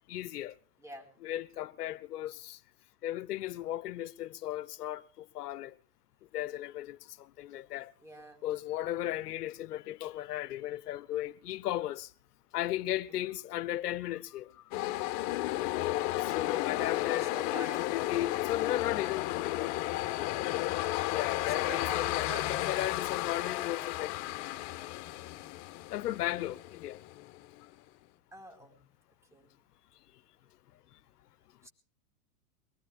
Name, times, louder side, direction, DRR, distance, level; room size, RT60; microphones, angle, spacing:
voice 1, 0.1-0.5 1.2-2.6 3.0-5.7 6.3-7.9 8.4-12.1 12.5-14.5 16.1-19.7 21.1-24.1 25.9-27.0, left 13 dB, 75° left, 1.0 m, -36 dB
voice 2, 8.0-8.4 13.1-13.2 16.7-18.1 21.5-22.5 28.3-28.7 29.3-29.5 31.6-31.7, right 1 dB, 5° right, 4.6 m, -46 dB
sound 1, 14.7-27.6, left 16 dB, 50° left, 1.4 m, -33 dB
23.0 x 20.5 x 2.5 m
hypercardioid pair, 115°, 46 cm